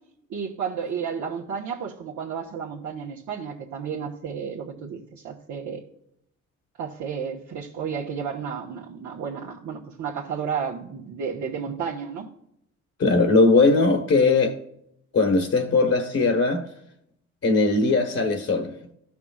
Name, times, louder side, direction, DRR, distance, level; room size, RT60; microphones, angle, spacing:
voice 1, 0.3-5.8 6.8-12.3, right 6 dB, 70° right, 1.4 m, -32 dB
voice 2, 13.0-14.6 15.1-16.6 17.4-18.9, left 3 dB, 50° left, 1.3 m, -20 dB
13.5 x 5.9 x 2.4 m
cardioid pair, 90°, 30 cm